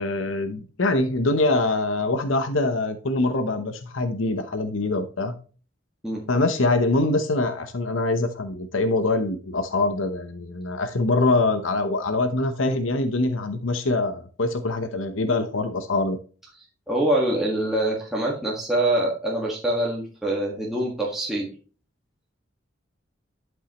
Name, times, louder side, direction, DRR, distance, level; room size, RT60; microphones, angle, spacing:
voice 1, 0.0-5.3 6.3-16.2, left 2 dB, 80° left, 8 dB, 0.9 m, -24 dB
voice 2, 16.9-21.5, right 1 dB, ahead, -5 dB, 1.7 m, -24 dB
11.5 x 5.5 x 3.0 m, 0.38 s
head